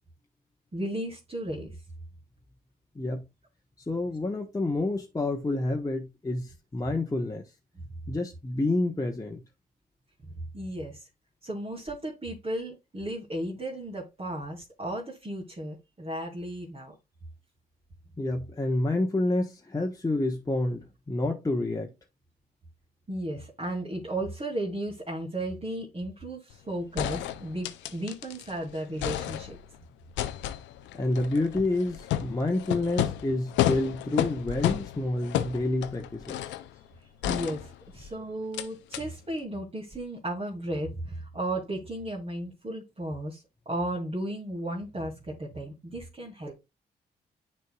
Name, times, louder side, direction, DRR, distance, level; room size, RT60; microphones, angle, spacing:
voice 1, 0.7-1.7 10.5-11.1 11.4-16.9 23.1-29.6 37.2-46.5, right 1 dB, 35° right, 2.4 m, -34 dB
voice 2, 3.9-7.4 8.1-9.4 18.2-21.9 30.9-36.4, left 2 dB, 20° left, 1.1 m, -28 dB
sound 1, 26.5-26.6 27.0-28.5 28.8-29.8 30.2-36.7 37.2-38.1 38.5-38.7 38.9-39.0, left 12 dB, 85° left, 0.5 m, -32 dB
9.3 x 4.5 x 2.3 m
supercardioid pair, 50°, 18 cm